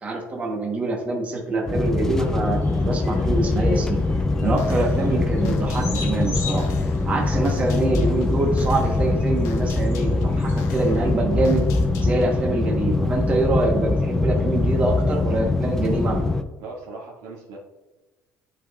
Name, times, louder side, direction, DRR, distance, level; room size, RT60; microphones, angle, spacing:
voice 1, 0.0-4.0 4.4-6.7 7.1-11.7 12.0-16.2, right 2 dB, 25° right, 0 dB, 1.1 m, -25 dB
sound 1, 1.7-16.4, left 2 dB, 10° left, 0.3 m, -23 dB
sound 2, 2.1-11.1, left 4 dB, 40° left, 1.4 m, -39 dB
sound 3, 4.6-12.5, left 3 dB, 65° left, 0.9 m, -40 dB
voice 2, 16.6-17.6, right 3 dB, 85° right, -3 dB, 2.0 m, -38 dB
11.0 x 4.7 x 2.4 m, 1.1 s
cardioid pair, 155°, 6 cm